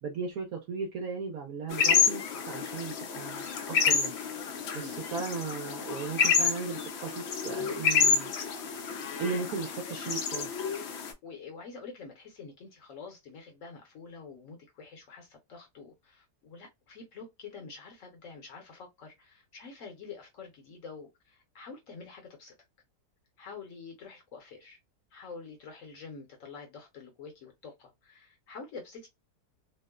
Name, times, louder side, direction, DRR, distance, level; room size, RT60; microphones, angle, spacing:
voice 1, 0.0-4.1 4.7-8.3 9.2-10.5, right 5 dB, 65° right, 1.1 m, -36 dB
sound 1, 1.7-11.1, left 6 dB, 75° left, 0.6 m, -29 dB
voice 2, 4.7-5.1 9.0-9.2 9.8-10.1 10.9-22.5 23.4-24.8 25.1-29.1, left 4 dB, 60° left, 0.9 m, -47 dB
2.9 x 2.0 x 2.2 m
omnidirectional pair, 1.7 m